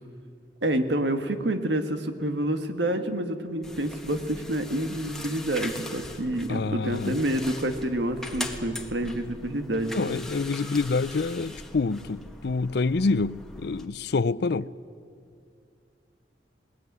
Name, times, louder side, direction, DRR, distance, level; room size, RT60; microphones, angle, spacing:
voice 1, 0.6-10.2, right 1 dB, 75° right, 1.8 m, -28 dB
sound 1, 3.6-13.9, left 1 dB, 5° left, 1.6 m, -41 dB
voice 2, 6.5-7.2 9.9-14.7, left 3 dB, 65° left, 0.5 m, -27 dB
21.0 x 19.0 x 9.6 m
head